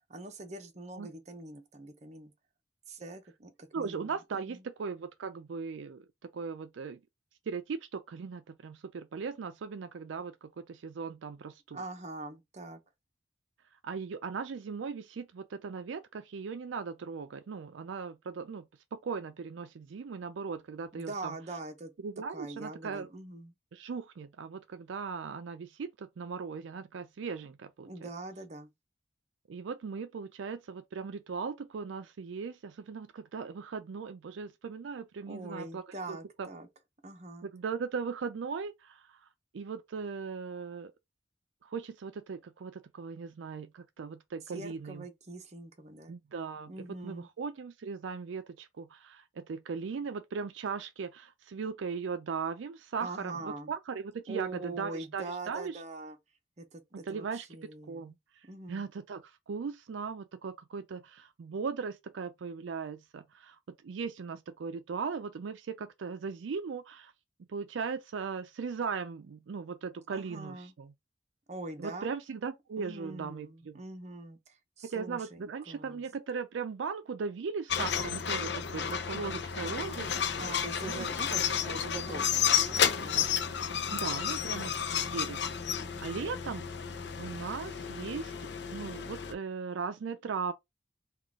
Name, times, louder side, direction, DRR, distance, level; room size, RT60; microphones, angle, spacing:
voice 1, 0.1-2.3 2.9-4.6 11.7-12.8 20.9-21.9 22.3-23.5 27.8-28.7 35.3-36.7 37.0-37.5 44.5-46.2 46.7-47.3 53.0-53.7 54.3-56.2 56.6-58.1 58.5-58.8 70.1-70.7 71.5-72.1 72.8-76.0 80.4-83.2, right 2 dB, 35° right, 0.8 m, -43 dB
voice 2, 3.7-7.0 7.5-11.8 13.8-21.4 22.0-23.1 23.7-27.9 29.5-35.8 36.1-36.5 37.4-39.3 39.5-40.9 41.6-45.1 46.1-55.8 57.1-57.5 57.9-67.1 67.5-70.9 71.8-73.8 74.8-80.4 80.8-81.1 83.9-84.7 85.1-86.6 87.2-90.5, right 5 dB, 80° right, 0.4 m, -38 dB
sound 1, 77.7-89.3, left 8 dB, 60° left, 0.6 m, -32 dB
3.7 x 2.4 x 3.5 m
head